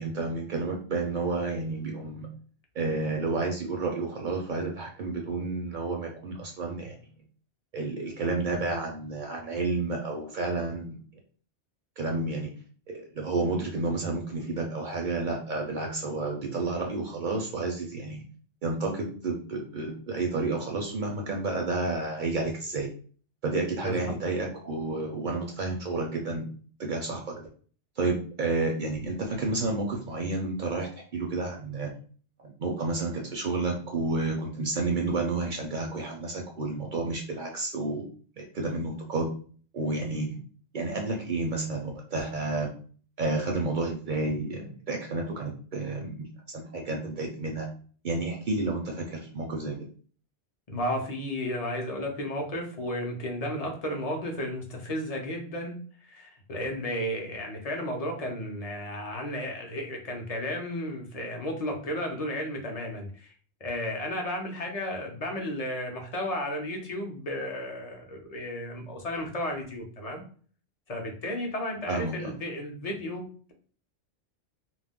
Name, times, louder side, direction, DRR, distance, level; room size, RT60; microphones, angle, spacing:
voice 1, 0.0-2.3 2.8-7.0 7.7-11.0 12.0-12.5 12.9-18.2 18.6-22.9 23.4-26.5 26.8-27.4 28.0-31.9 32.4-38.0 38.4-39.3 39.7-40.4 40.7-42.7 43.2-46.2 46.5-47.7 48.0-49.8 71.9-72.3, right 3 dB, 55° right, 1 dB, 0.6 m, -30 dB
voice 2, 50.7-55.8 56.1-63.3 63.6-70.2 70.9-73.5, left 1 dB, 45° left, 2 dB, 0.5 m, -33 dB
2.4 x 2.1 x 3.5 m, 0.43 s
omnidirectional pair, 1.2 m